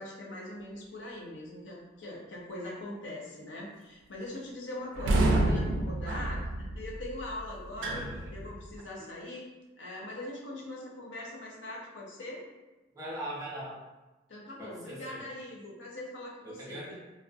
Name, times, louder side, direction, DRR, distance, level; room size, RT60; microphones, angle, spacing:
voice 1, 0.0-8.0 8.3-9.5 9.8-12.4 14.3-16.9, left 1 dB, 75° left, -3 dB, 0.6 m, -42 dB
sound 1, 4.9-8.8, right 1 dB, 85° right, 0.3 m, -29 dB
voice 2, 7.9-8.3 9.0-9.1 12.9-13.8 14.6-15.2 16.4-16.9, right 1 dB, 20° right, -6 dB, 0.4 m, -41 dB
2.4 x 2.1 x 2.5 m, 1.1 s
head